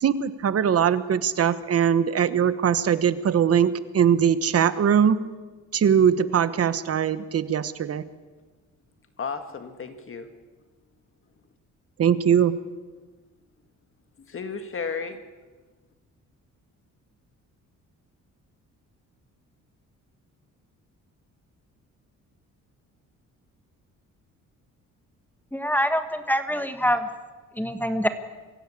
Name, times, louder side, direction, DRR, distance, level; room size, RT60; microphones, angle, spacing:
voice 1, 0.0-5.2 5.7-8.0 12.0-12.6, right 8 dB, 50° right, 14 dB, 1.2 m, -21 dB
voice 2, 9.2-10.3 14.3-15.2, left 5 dB, 40° left, 8 dB, 1.8 m, -33 dB
voice 3, 25.5-27.1 27.6-28.1, equal, 5° left, 9 dB, 1.5 m, -25 dB
24.0 x 16.0 x 8.5 m, 1.3 s
cardioid pair, 115°, 31 cm